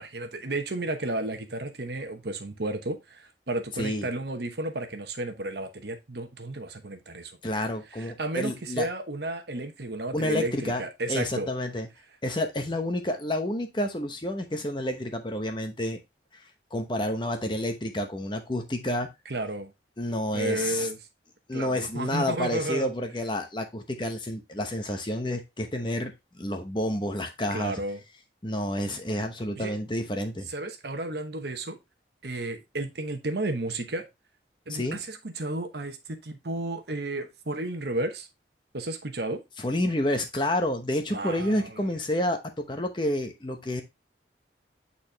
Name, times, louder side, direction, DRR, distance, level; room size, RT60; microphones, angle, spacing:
voice 1, 0.0-7.4 7.9-11.5 19.3-19.7 20.3-21.0 21.5-22.9 27.5-28.0 29.6-29.7 30.5-31.8 32.2-34.1 34.7-38.3 38.7-39.4 41.1-42.0, right 2 dB, 65° right, 1.0 m, -33 dB
voice 2, 3.8-4.1 7.4-8.9 10.1-10.8 11.1-11.9 12.2-16.0 16.3-16.4 16.7-19.1 20.0-20.9 21.5-27.8 28.4-30.5 34.7-35.0 39.6-43.8, left 1 dB, 25° left, 0.9 m, -29 dB
8.7 x 4.2 x 2.8 m
head